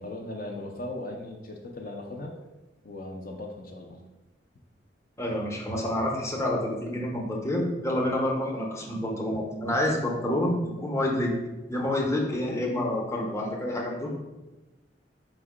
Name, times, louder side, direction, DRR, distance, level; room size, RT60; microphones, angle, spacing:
voice 1, 0.0-2.4 2.8-4.0, left 1 dB, 50° left, 0 dB, 0.5 m, -38 dB
voice 2, 5.2-11.3 11.7-14.1, left 1 dB, 15° left, -1 dB, 0.7 m, -28 dB
4.7 x 2.2 x 4.7 m, 1.1 s
head